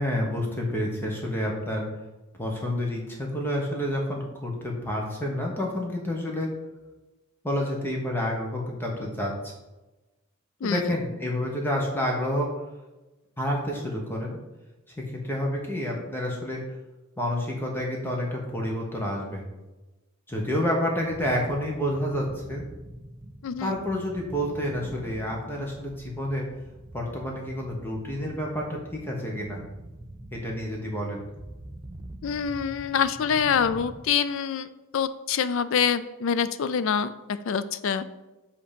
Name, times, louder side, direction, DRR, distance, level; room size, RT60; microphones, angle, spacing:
voice 1, 0.0-1.9 2.3-6.5 7.4-9.5 10.6-12.5 13.4-14.4 15.0-16.6 17.2-19.4 20.3-22.6 23.6-26.5 26.9-29.6 30.3-31.2, left 1 dB, 10° left, -1 dB, 1.0 m, -29 dB
sound 1, 21.1-34.0, right 1 dB, 20° right, 0.4 m, -44 dB
voice 2, 23.4-23.7 32.2-34.7 34.9-37.1 37.5-38.0, left 7 dB, 65° left, 14 dB, 0.3 m, -25 dB
7.7 x 2.9 x 5.1 m, 1.1 s
head